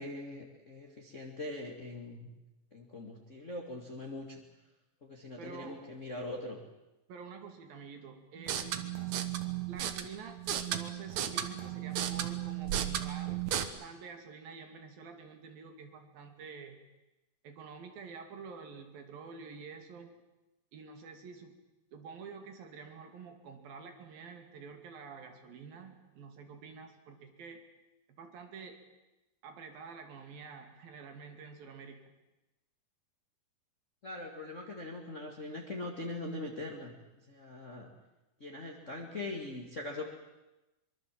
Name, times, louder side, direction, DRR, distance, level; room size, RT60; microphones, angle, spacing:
voice 1, 0.0-2.3 2.7-4.4 5.0-6.6 34.0-36.9 37.3-37.9 38.4-40.1, left 2 dB, 25° left, 1 dB, 2.1 m, -41 dB
voice 2, 5.4-5.9 7.1-8.9 9.7-16.8 17.4-20.2 20.7-21.6 21.9-27.6 28.1-28.8 29.4-32.1, right 5 dB, 80° right, 5 dB, 4.5 m, -48 dB
sound 1, 8.4-13.6, right 11 dB, 60° right, 2.4 m, -35 dB
24.0 x 23.5 x 7.7 m, 1.0 s
omnidirectional pair, 4.1 m